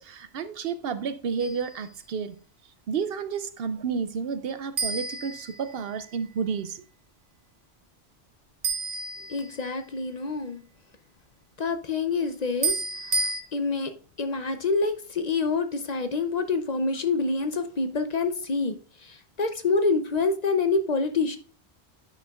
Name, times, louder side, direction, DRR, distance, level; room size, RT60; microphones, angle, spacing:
voice 1, 0.0-2.4 2.9-6.8, right 6 dB, 65° right, 0.7 m, -31 dB
sound 1, 1.4-1.8 4.8-6.1 8.6-9.9 12.6-13.4, right 4 dB, 85° right, 1.4 m, -30 dB
voice 2, 9.3-10.6 11.6-12.8 13.5-13.9 14.2-18.8 19.0-21.4, left 4 dB, 45° left, 0.6 m, -26 dB
9.7 x 5.5 x 2.3 m
omnidirectional pair, 1.1 m